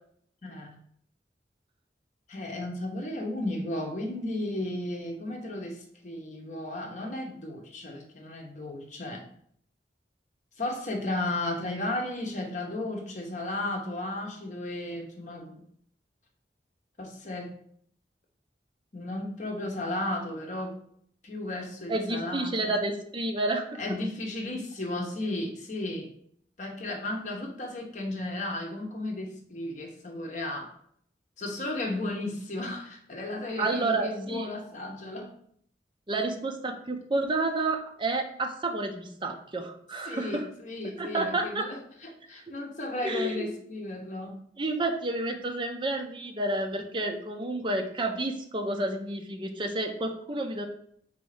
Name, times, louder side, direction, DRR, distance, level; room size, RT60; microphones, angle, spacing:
voice 1, 0.4-0.8 2.3-9.3 10.6-15.6 17.0-17.6 18.9-20.8 21.2-22.8 23.8-26.1 26.6-30.7 31.4-35.3 40.1-41.8 42.3-44.4, left 1 dB, 45° left, 1 dB, 0.9 m, -34 dB
voice 2, 21.9-23.8 33.6-34.5 36.1-40.5 41.0-41.7 42.3-42.4 43.0-43.5 44.6-50.7, right 2 dB, 30° right, 3 dB, 0.5 m, -30 dB
4.1 x 2.7 x 4.8 m, 0.64 s
head